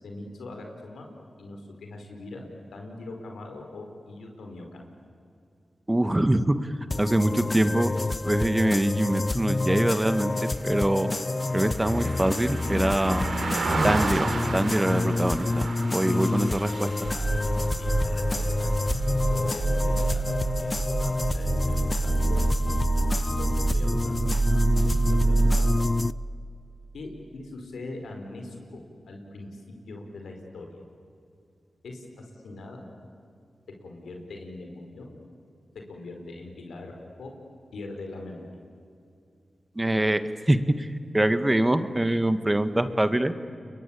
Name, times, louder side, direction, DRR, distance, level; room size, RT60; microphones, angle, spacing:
voice 1, 0.0-1.1 1.4-4.8 16.4-16.5 16.9-17.3 17.8-18.8 19.3-20.2 20.6-22.7 23.4-25.7 26.9-29.6 29.9-30.8 31.8-32.8 33.7-35.1 35.9-36.9 37.2-37.3 37.7-38.5, left 2 dB, 90° left, 3 dB, 4.8 m, -42 dB
voice 2, 5.9-6.7 7.0-7.9 8.2-11.1 11.5-13.3 13.8-16.9 39.7-40.9 41.1-43.3, right 1 dB, 20° right, 10 dB, 1.7 m, -24 dB
sound 1, 6.9-26.1, left 2 dB, 40° left, 0.6 m, -28 dB
Car passing by, 10.1-19.7 20.0-20.3, right 3 dB, 75° right, 3.5 m, -34 dB
sound 2, 17.0-25.6, right 3 dB, 55° right, 2.5 m, -26 dB
30.0 x 22.5 x 8.6 m, 2.5 s
cardioid pair, 40°, 0 cm